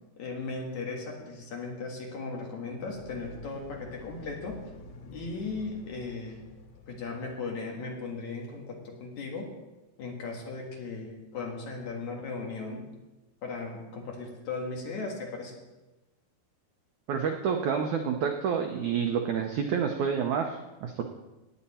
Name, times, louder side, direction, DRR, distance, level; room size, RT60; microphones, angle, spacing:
voice 1, 0.2-4.6 5.1-6.4 6.9-9.5 10.0-12.8 13.4-15.5, left 3 dB, 55° left, 0 dB, 2.7 m, -37 dB
sound 1, 2.5-7.7, left 3 dB, 80° left, 1.2 m, -49 dB
voice 2, 17.1-21.0, right 7 dB, 80° right, 4 dB, 1.7 m, -29 dB
18.0 x 8.8 x 4.3 m, 1.1 s
omnidirectional pair, 4.5 m